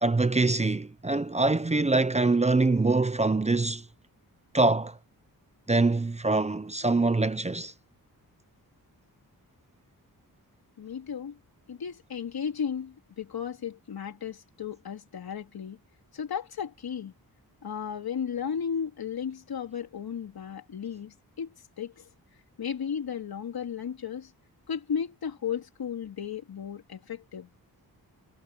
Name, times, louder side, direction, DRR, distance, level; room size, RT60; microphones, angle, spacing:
voice 1, 0.0-3.8 4.5-5.0 5.7-7.7, right 3 dB, 20° right, 0.7 m, -24 dB
voice 2, 10.8-11.4 11.7-15.8 16.1-17.1 17.6-21.5 21.8-21.9 22.6-24.3 24.7-27.5, left 7 dB, 80° left, 3.9 m, -34 dB
wide cardioid pair, 130°, 37 cm